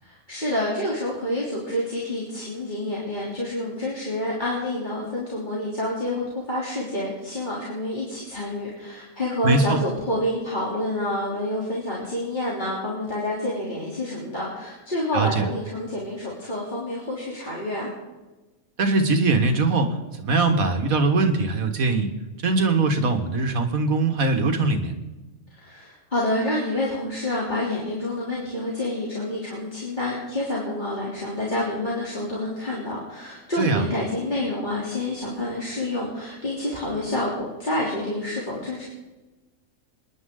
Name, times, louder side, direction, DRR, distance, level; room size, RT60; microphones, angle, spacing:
voice 1, 0.0-17.9 25.5-38.8, left 1 dB, 35° left, -6 dB, 3.3 m, -28 dB
voice 2, 9.4-9.8 15.1-15.5 18.8-22.1 22.4-24.9 33.6-33.9, right 3 dB, 90° right, 6 dB, 2.0 m, -21 dB
28.0 x 10.5 x 3.8 m, 1.2 s
omnidirectional pair, 1.4 m